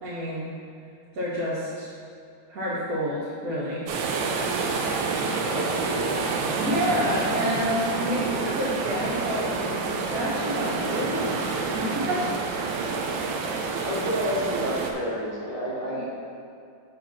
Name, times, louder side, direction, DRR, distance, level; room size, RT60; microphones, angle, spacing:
voice 1, 0.0-0.5 1.1-2.0 2.5-3.9 6.6-11.4 11.7-12.3 12.9-13.2 13.6-13.9 15.9-16.0, equal, 55° right, -9 dB, 1.5 m, -29 dB
sound 1, 3.9-14.9, right 4 dB, 85° right, 1.5 m, -28 dB
voice 2, 5.4-6.3 13.8-16.0, equal, 25° left, -6 dB, 1.0 m, -30 dB
6.1 x 5.0 x 5.9 m, 2.4 s
omnidirectional pair, 2.0 m